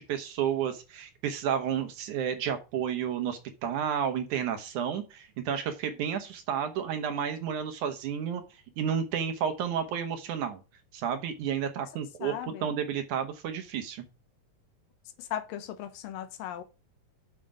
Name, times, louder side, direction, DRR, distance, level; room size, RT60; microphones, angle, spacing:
voice 1, 0.0-8.4 8.8-10.6 10.9-12.3 12.6-14.0, right 8 dB, 70° right, 2.3 m, -31 dB
voice 2, 12.2-12.7 15.2-16.6, left 11 dB, 85° left, 2.6 m, -37 dB
7.6 x 6.6 x 4.8 m
omnidirectional pair, 4.0 m